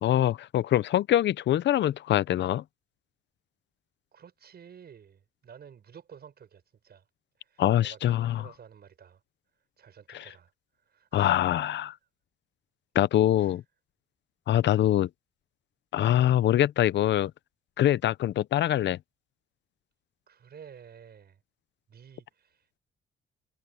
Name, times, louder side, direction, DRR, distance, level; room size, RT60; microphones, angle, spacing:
voice 1, 0.0-2.6 7.6-8.5 10.1-10.3 11.1-11.9 12.9-13.6 14.5-15.1 15.9-17.3 17.8-19.0, left 12 dB, 65° left, 0.7 m, -24 dB
voice 2, 4.1-7.0 7.4-9.2 9.8-10.5 10.9-11.5 13.4-13.6 20.3-21.4 21.9-22.8, right 7 dB, 55° right, 6.5 m, -51 dB
cardioid pair, 90°, 20 cm